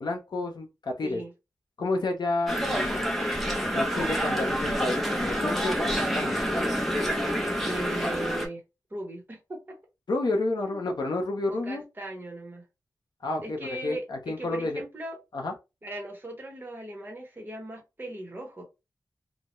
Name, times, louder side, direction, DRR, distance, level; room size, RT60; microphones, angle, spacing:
voice 1, 0.0-1.2 1.8-3.1 3.7-6.4 10.1-11.8 13.2-14.8 15.3-15.5, left 2 dB, 70° left, 0.7 m, -30 dB
sound 1, 2.5-8.5, equal, 5° left, 0.6 m, -27 dB
voice 2, 7.6-8.6 8.9-9.8 10.6-10.8 11.5-12.6 13.4-15.2 15.8-18.6, right 1 dB, 25° right, 1.0 m, -38 dB
2.2 x 2.1 x 2.9 m
wide cardioid pair, 100°, 8 cm